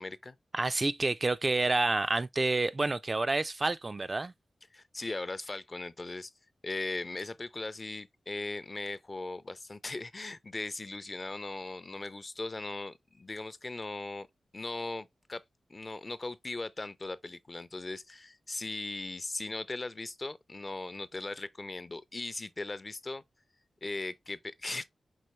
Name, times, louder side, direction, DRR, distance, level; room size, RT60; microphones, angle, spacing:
voice 1, 0.0-0.4 4.7-6.3 6.6-14.3 14.5-15.4 15.7-23.2 23.8-24.9, left 2 dB, 35° left, 0.5 m, -38 dB
voice 2, 0.5-4.3, right 2 dB, 35° right, 0.3 m, -29 dB
5.6 x 3.0 x 3.0 m
cardioid pair, 65°, 0 cm